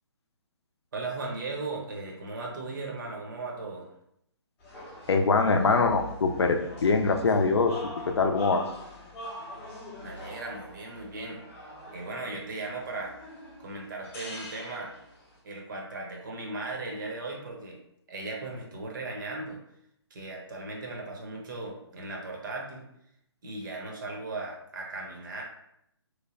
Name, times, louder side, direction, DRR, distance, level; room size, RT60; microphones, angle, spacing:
voice 1, 0.9-3.9 10.0-13.2 13.6-14.9 15.4-17.8 18.1-19.6 20.1-22.8 23.4-25.4, right 3 dB, 45° right, -1 dB, 0.8 m, -37 dB
sound 1, 4.6-15.4, equal, 15° left, 0.7 m, -43 dB
voice 2, 5.1-7.8 8.1-8.6, left 4 dB, 65° left, 5 dB, 0.5 m, -23 dB
3.2 x 2.1 x 3.7 m, 0.77 s
figure-of-eight pair, 140°, 15 cm